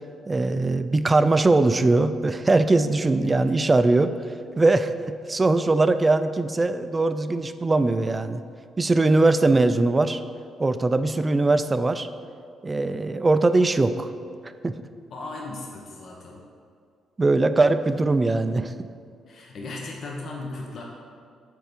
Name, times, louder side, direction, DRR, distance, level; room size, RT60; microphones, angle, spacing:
voice 1, 0.3-4.1 4.6-8.4 8.8-10.2 10.6-12.1 12.6-14.1 14.6-14.7 17.2-18.7, right 2 dB, 25° right, 11 dB, 0.3 m, -21 dB
voice 2, 3.2-3.7 15.1-16.4 19.3-20.8, left 2 dB, 60° left, -1 dB, 0.9 m, -36 dB
6.4 x 4.6 x 5.1 m, 2.3 s
cardioid pair, 90°, 0 cm